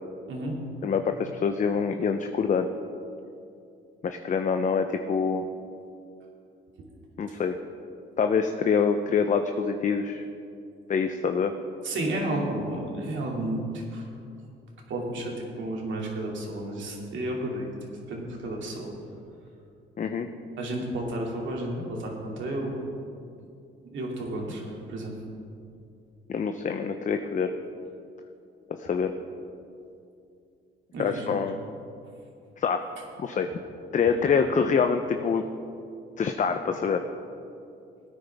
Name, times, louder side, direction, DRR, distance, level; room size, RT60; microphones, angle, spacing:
voice 1, 0.8-2.7 4.0-5.4 7.2-7.6 8.2-10.2 10.9-11.5 20.0-20.3 26.3-27.5 28.8-29.1 31.0-31.6 32.6-32.8 33.2-33.5 33.9-35.4 36.2-37.1, left 6 dB, 40° left, 6 dB, 0.6 m, -25 dB
voice 2, 11.8-14.1 14.9-17.7 18.1-18.9 20.6-22.8 23.9-25.2 30.9-31.4, right 1 dB, 70° right, -1 dB, 2.5 m, -32 dB
17.0 x 9.5 x 3.5 m, 2.6 s
cardioid pair, 90°, 20 cm